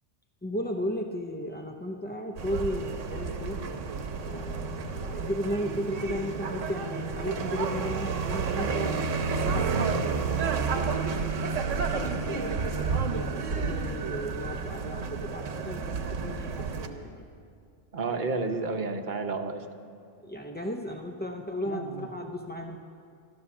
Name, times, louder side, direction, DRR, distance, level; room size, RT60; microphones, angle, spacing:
voice 1, 0.4-3.6 4.2-10.9 11.2-11.5 11.9-17.3 18.1-18.3 20.2-22.8, equal, 15° left, 2 dB, 0.3 m, -35 dB
sound 1, 2.4-16.9, right 5 dB, 90° right, 1.3 m, -30 dB
voice 2, 17.9-19.7 21.7-22.1, right 3 dB, 45° right, 5 dB, 0.9 m, -31 dB
13.0 x 12.5 x 7.1 m, 2.4 s
omnidirectional pair, 1.2 m